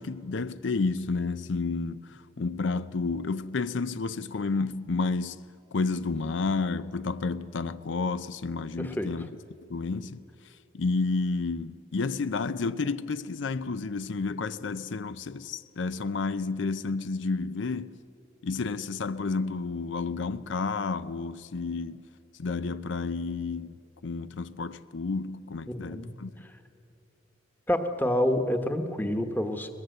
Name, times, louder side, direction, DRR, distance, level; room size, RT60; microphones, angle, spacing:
voice 1, 0.0-5.4 5.7-9.4 9.7-18.0 18.4-22.1 22.4-26.3, left 4 dB, 80° left, 0.5 m, -31 dB
voice 2, 8.8-9.1 25.7-26.2 27.7-29.7, left 1 dB, 10° left, 1.1 m, -28 dB
22.5 x 20.5 x 7.8 m
head